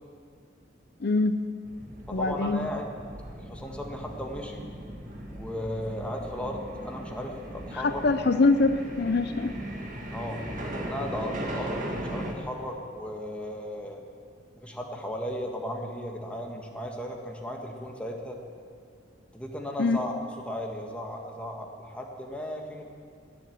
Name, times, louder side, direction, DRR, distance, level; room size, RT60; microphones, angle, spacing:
voice 1, 1.0-1.4 2.1-2.7 7.7-9.5 19.8-20.0, left 3 dB, 60° left, 9 dB, 0.6 m, -24 dB
sound 1, 1.6-12.3, right 1 dB, 45° right, 2.0 m, -38 dB
voice 2, 2.1-2.9 3.4-4.6 5.3-8.0 10.1-10.4 10.8-14.0 14.6-18.4 19.3-20.1 20.4-22.8, equal, 5° left, 1 dB, 1.6 m, -36 dB
19.0 x 7.8 x 8.6 m, 2.2 s
head